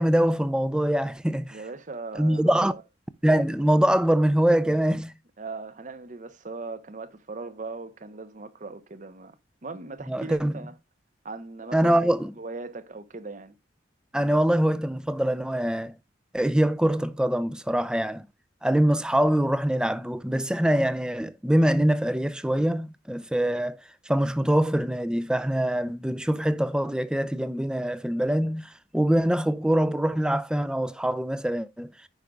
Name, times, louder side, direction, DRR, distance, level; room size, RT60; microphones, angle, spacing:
voice 1, 0.0-1.6 2.2-2.7 3.2-5.1 10.1-10.5 11.7-12.3 14.1-15.9 16.3-18.3 18.6-31.9, right 1 dB, 5° right, 0.4 m, -24 dB
voice 2, 1.5-2.8 5.4-9.4 9.6-10.7 11.2-12.0 12.4-13.5, right 3 dB, 40° right, 0.7 m, -39 dB
15.0 x 5.1 x 2.3 m
head